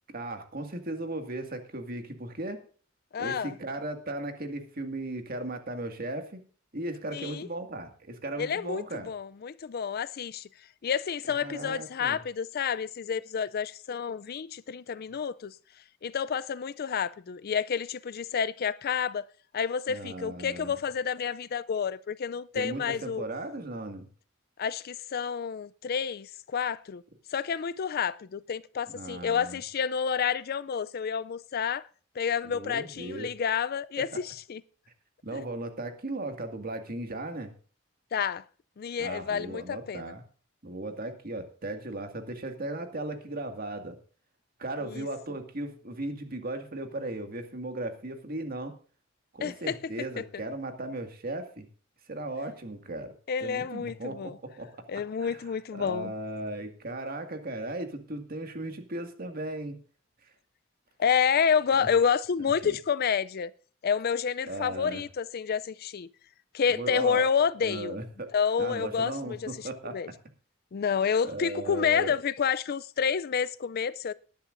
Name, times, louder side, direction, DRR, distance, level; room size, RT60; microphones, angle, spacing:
voice 1, 0.1-2.6 3.2-6.4 6.7-9.1 11.3-12.2 19.9-20.8 22.5-24.1 28.9-29.6 32.4-33.3 35.2-37.5 39.0-40.2 40.6-44.0 44.6-48.7 49.3-51.7 52.1-53.1 53.4-54.8 55.2-59.8 61.7-61.9 62.6-62.8 64.5-65.0 66.7-67.3 67.6-68.3 68.6-70.1 71.2-72.2, right 2 dB, 50° right, 2.0 m, -37 dB
voice 2, 3.1-3.5 7.1-7.5 8.4-10.5 10.8-15.5 16.0-19.2 19.5-23.2 24.6-27.0 27.3-31.9 32.2-34.6 35.3-35.4 38.1-38.4 38.8-40.1 44.8-45.1 49.4-49.8 53.3-54.4 54.9-56.1 61.0-63.5 63.8-66.1 66.5-68.0 68.3-69.5 69.8-70.1 70.7-74.1, left 7 dB, 50° left, 0.4 m, -29 dB
19.5 x 10.5 x 2.6 m
head